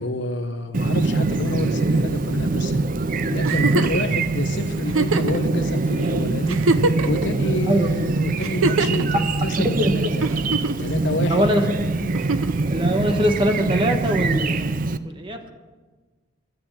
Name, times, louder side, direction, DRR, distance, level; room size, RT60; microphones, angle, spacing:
voice 1, 0.0-2.9 3.3-6.6 7.0-10.3 10.8-11.5, left 1 dB, 60° left, 7 dB, 1.2 m, -28 dB
Chirp tweet, 0.7-15.0, right 3 dB, 40° right, 0.5 m, -23 dB
Giggle, 3.4-4.0 4.9-5.4 6.0-6.1 6.5-7.2 8.4-9.0 10.2-10.9 12.1-12.6 14.1-14.2, right 3 dB, 90° right, 0.8 m, -23 dB
voice 2, 9.8-10.1 11.3-11.7 12.0-12.1 12.7-14.7 15.0-15.5, equal, 25° right, 5 dB, 1.2 m, -22 dB
13.0 x 8.1 x 8.7 m, 1.3 s
head